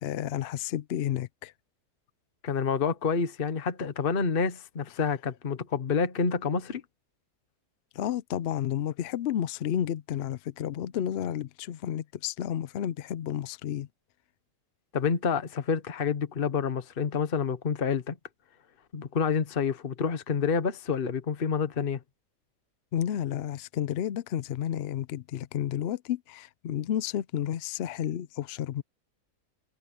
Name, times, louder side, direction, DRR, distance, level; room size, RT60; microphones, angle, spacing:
voice 1, 0.0-1.5 7.9-13.9 22.9-28.8, left 10 dB, 65° left, 0.7 m, -31 dB
voice 2, 2.4-6.8 14.9-18.2 18.9-22.0, left 6 dB, 40° left, 1.2 m, -28 dB
omnidirectional pair, 1.5 m